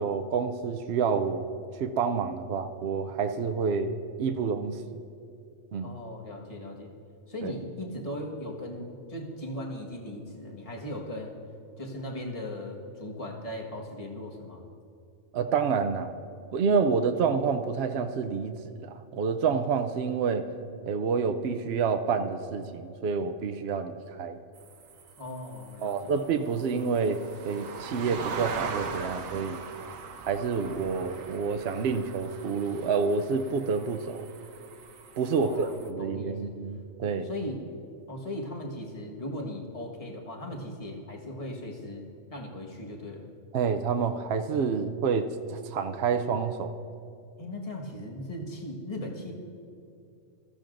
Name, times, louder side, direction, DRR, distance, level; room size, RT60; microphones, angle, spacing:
voice 1, 0.0-1.5 1.8-5.0 5.7-5.9 7.4-7.5 15.3-16.1 16.5-20.4 20.9-24.4 25.8-27.2 27.4-29.6 30.2-34.2 35.2-37.3 43.5-46.7, right 5 dB, 60° right, 6 dB, 0.8 m, -28 dB
voice 2, 5.8-6.9 7.3-11.3 11.8-14.6 25.2-26.1 35.3-36.5 37.2-37.8 38.1-42.0 42.3-43.3 47.4-49.3, left 1 dB, 25° left, -1 dB, 1.5 m, -38 dB
sound 1, 24.5-35.9, right 5 dB, 80° right, 1.2 m, -41 dB
23.0 x 14.5 x 2.6 m, 2.6 s
omnidirectional pair, 1.4 m